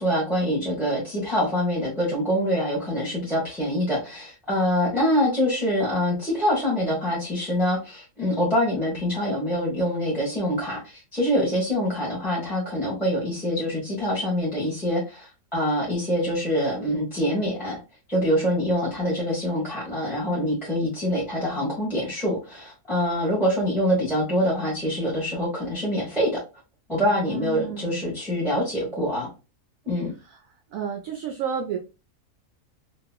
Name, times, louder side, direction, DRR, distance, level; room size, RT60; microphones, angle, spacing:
voice 1, 0.0-17.8 18.1-26.4 26.9-29.3 29.8-30.1, equal, ahead, -7 dB, 1.0 m, -25 dB
voice 2, 27.1-28.1 30.2-30.4 30.7-31.8, right 7 dB, 70° right, 3 dB, 0.9 m, -31 dB
2.9 x 2.8 x 2.3 m, 0.29 s
omnidirectional pair, 1.7 m